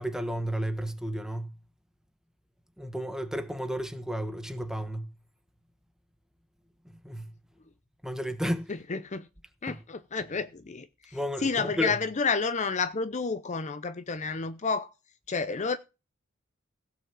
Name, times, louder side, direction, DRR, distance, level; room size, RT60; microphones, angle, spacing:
voice 1, 0.0-1.5 2.8-5.1 7.0-7.3 8.0-8.7 9.7-9.8 11.1-12.0, equal, 5° right, 1.2 m, -32 dB
voice 2, 8.7-9.3 9.6-14.9 15.3-15.8, left 4 dB, 35° left, 0.6 m, -30 dB
16.5 x 5.8 x 7.4 m
head